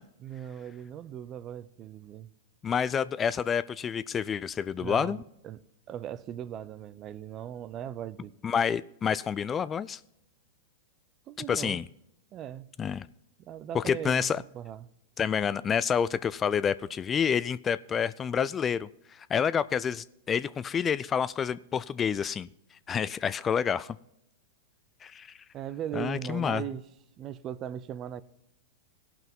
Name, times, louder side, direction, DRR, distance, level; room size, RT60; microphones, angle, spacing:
voice 1, 0.2-2.3 4.8-5.6 5.9-8.3 11.3-11.8 12.3-12.7 13.4-14.9 25.5-26.9 27.2-28.2, right 10 dB, 35° right, 0.6 m, -39 dB
voice 2, 2.6-5.2 8.4-10.0 11.5-11.8 12.8-13.1 13.7-14.4 15.2-22.5 22.9-24.0 25.0-25.3 26.0-26.6, left 7 dB, 20° left, 0.3 m, -28 dB
16.5 x 5.8 x 5.4 m
hypercardioid pair, 120°, 0 cm